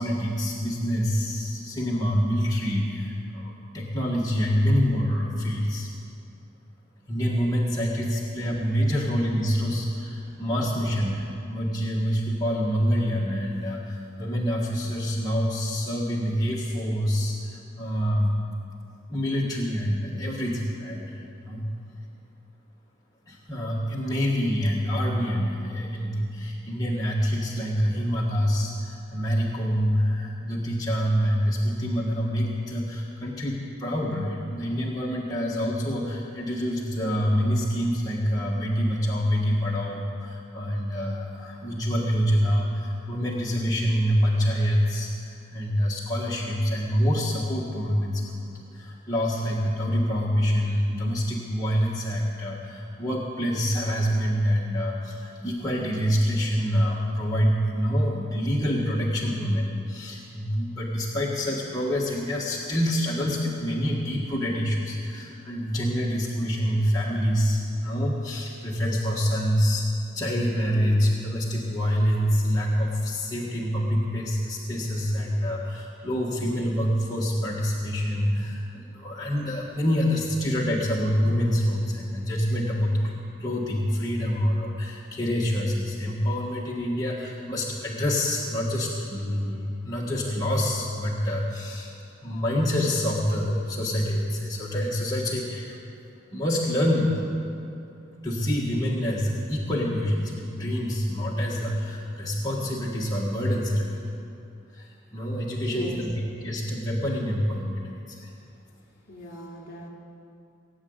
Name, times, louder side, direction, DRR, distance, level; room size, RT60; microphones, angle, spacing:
voice 1, 0.0-5.9 7.1-18.4 19.1-21.7 23.3-69.9 70.1-91.9 92.2-95.8 96.3-97.2 98.2-103.9 104.7-106.2 106.4-108.3, equal, 20° left, -5 dB, 1.6 m, -26 dB
voice 2, 105.6-106.0 109.1-109.9, equal, 50° left, -2 dB, 3.1 m, -37 dB
18.5 x 9.1 x 8.0 m, 2.6 s
head